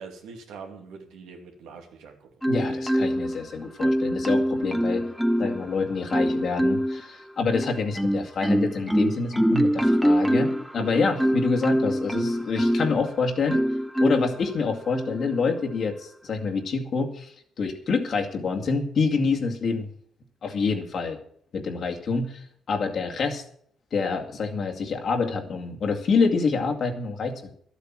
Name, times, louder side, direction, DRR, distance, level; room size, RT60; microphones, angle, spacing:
voice 1, 0.0-2.3, right 5 dB, 90° right, 3 dB, 2.6 m, -43 dB
Marimba xylophone, 2.4-3.4 3.8-5.6 6.1-7.0 7.5-13.0 13.5-14.4 14.9-15.2, equal, ahead, 0.8 m, -24 dB
voice 2, 2.5-5.0 5.4-13.6 14.0-19.9 20.4-21.2 21.5-23.4 23.9-27.5, left 4 dB, 55° left, 2 dB, 2.2 m, -27 dB
12.0 x 8.3 x 7.4 m, 0.62 s
cardioid pair, 90°, 0 cm